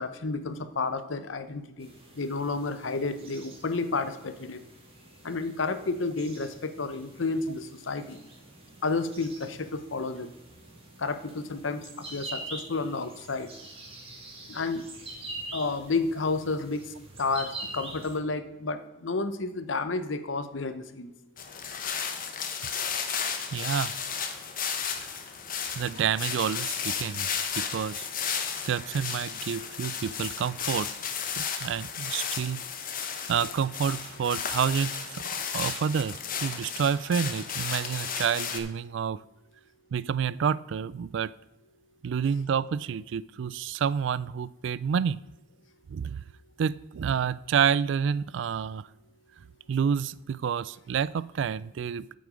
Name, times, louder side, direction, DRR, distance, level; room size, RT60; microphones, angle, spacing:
voice 1, 0.0-1.9 2.1-4.6 5.2-8.2 8.8-10.3 11.0-13.5 14.5-14.8 15.5-21.1 21.8-22.0, left 3 dB, 85° left, 10 dB, 0.8 m, -31 dB
sound 1, 1.8-18.2, right 2 dB, 30° right, 2.4 m, -45 dB
sound 2, 21.4-38.6, left 7 dB, 50° left, 1.1 m, -34 dB
voice 2, 23.5-23.9 25.8-27.3 27.6-30.9 31.4-32.6 33.3-39.2 39.9-41.3 42.0-45.2 45.9-46.2 46.6-48.8 49.7-52.1, right 7 dB, 70° right, 20 dB, 0.3 m, -29 dB
8.6 x 7.8 x 5.1 m, 0.95 s
head